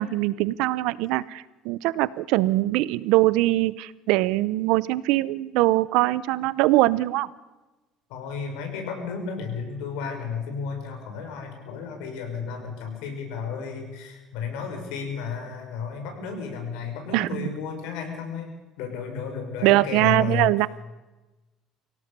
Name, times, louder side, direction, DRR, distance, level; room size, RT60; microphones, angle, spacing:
voice 1, 0.0-7.3 17.1-17.5 19.6-20.7, right 17 dB, 80° right, 19 dB, 0.7 m, -22 dB
voice 2, 8.1-18.5 18.8-20.5, left 5 dB, 90° left, 4 dB, 6.0 m, -33 dB
25.0 x 17.0 x 6.8 m, 1.1 s
cardioid pair, 145°, 0 cm